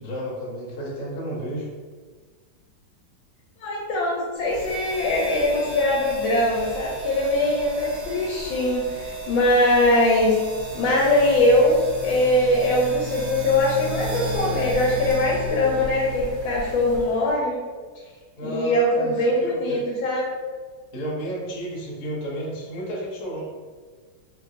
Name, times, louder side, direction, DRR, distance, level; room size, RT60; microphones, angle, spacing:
voice 1, 0.0-1.7 18.4-19.8 20.9-23.4, right 1 dB, 55° left, -5 dB, 1.1 m, -32 dB
voice 2, 3.6-10.4 10.7-11.8 12.0-17.6 18.4-20.3, left 1 dB, 80° left, -3 dB, 1.3 m, -21 dB
sound 1, 4.4-17.3, right 2 dB, 75° right, 1.1 m, -34 dB
3.1 x 2.6 x 2.4 m, 1.5 s
omnidirectional pair, 2.1 m